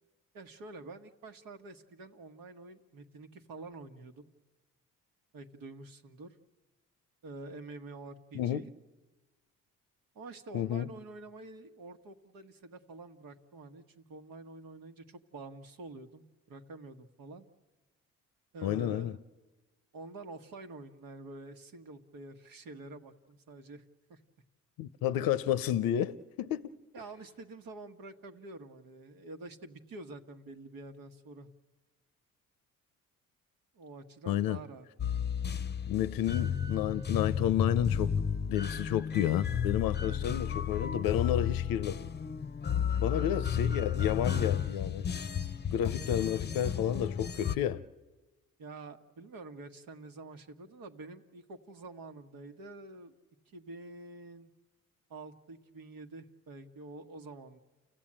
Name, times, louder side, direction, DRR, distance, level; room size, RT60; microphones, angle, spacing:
voice 1, 0.3-4.3 5.3-6.4 7.2-8.7 10.1-17.5 18.5-19.2 19.9-23.8 24.1-24.2 26.9-31.5 33.7-34.9 43.1-43.4 48.6-53.1 53.5-54.5 55.1-57.6, right 2 dB, 80° right, 1.5 m, -47 dB
voice 2, 10.5-10.9 18.6-19.2 24.8-26.7 34.3-34.6 35.9-38.1 38.5-42.1 43.0-45.1 45.7-47.8, left 10 dB, 90° left, 0.6 m, -31 dB
sound 1, 35.0-47.6, left 8 dB, 30° left, 0.7 m, -32 dB
29.5 x 15.0 x 8.8 m
cardioid pair, 65°, 34 cm